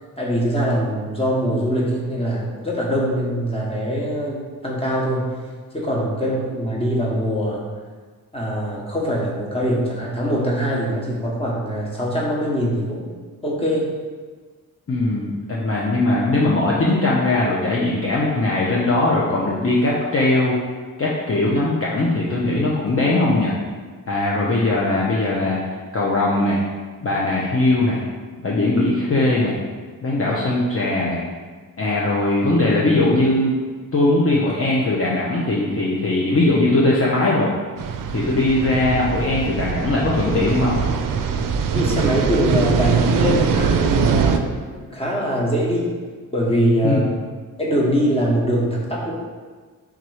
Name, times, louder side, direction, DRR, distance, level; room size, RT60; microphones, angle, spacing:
voice 1, 0.2-5.3 5.7-7.6 8.3-13.1 13.4-13.9 41.7-45.9 46.3-47.1 47.6-49.1, equal, 15° left, -4 dB, 1.2 m, -22 dB
voice 2, 14.9-20.6 21.0-23.5 24.1-25.6 25.9-26.6 27.0-28.0 28.4-29.6 30.0-31.2 31.8-33.5 33.9-37.5 38.1-40.8 46.8-47.0, left 2 dB, 40° left, -5 dB, 0.7 m, -20 dB
sound 1, 37.8-44.4, right 6 dB, 65° right, 0.5 m, -22 dB
3.6 x 3.0 x 4.8 m, 1.5 s
cardioid pair, 70°, 35 cm